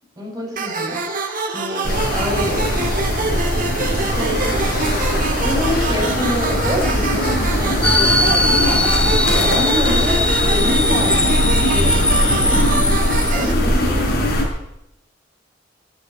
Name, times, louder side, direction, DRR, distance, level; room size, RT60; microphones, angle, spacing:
voice 1, 0.2-1.0 1.5-2.6 4.0-4.8 5.4-9.0 9.3-11.3 11.7-12.7 13.3-14.1, left 1 dB, 20° right, -3 dB, 7.0 m, -27 dB
sound 1, 0.6-13.5, right 4 dB, 45° right, 2.1 m, -26 dB
sound 2, 1.8-14.4, equal, 55° left, 5.5 m, -20 dB
sound 3, 7.8-13.3, left 2 dB, 5° left, 0.5 m, -20 dB
13.5 x 10.5 x 9.4 m, 0.84 s
head